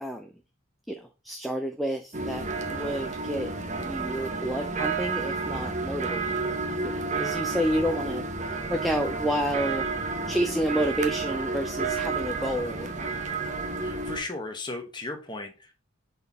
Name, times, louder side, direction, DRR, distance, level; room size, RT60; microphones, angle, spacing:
voice 1, 0.0-0.3 0.9-3.5 3.8-9.8 10.3-12.9, equal, ahead, 5 dB, 0.4 m, -30 dB
sound 1, 2.1-14.2, right 3 dB, 35° right, 0.8 m, -31 dB
voice 2, 13.8-15.7, left 2 dB, 20° left, 3 dB, 1.0 m, -36 dB
5.4 x 4.1 x 4.2 m, 0.30 s
head